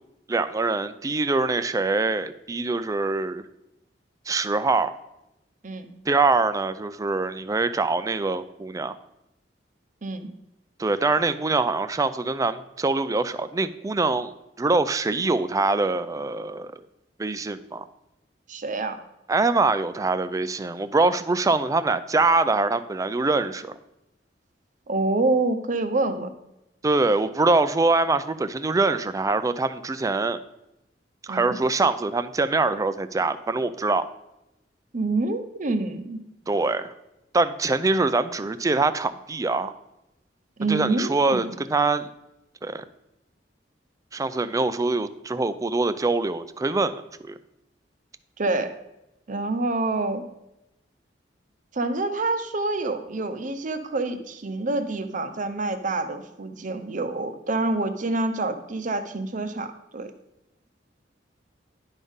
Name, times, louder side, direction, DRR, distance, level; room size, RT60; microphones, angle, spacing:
voice 1, 0.3-3.4 4.3-4.9 6.1-8.9 10.8-14.3 14.6-16.7 17.2-17.8 19.3-23.7 26.8-30.4 31.2-34.0 36.5-36.9 37.3-39.7 40.7-42.1 42.6-42.8 44.1-47.3, right 3 dB, 20° right, 12 dB, 0.3 m, -24 dB
voice 2, 18.5-19.0 24.9-26.3 31.3-31.6 34.9-36.2 40.6-41.5 48.4-48.7 49.3-50.2 51.7-60.1, right 2 dB, 45° right, 9 dB, 0.7 m, -27 dB
10.5 x 3.6 x 5.4 m, 0.90 s
head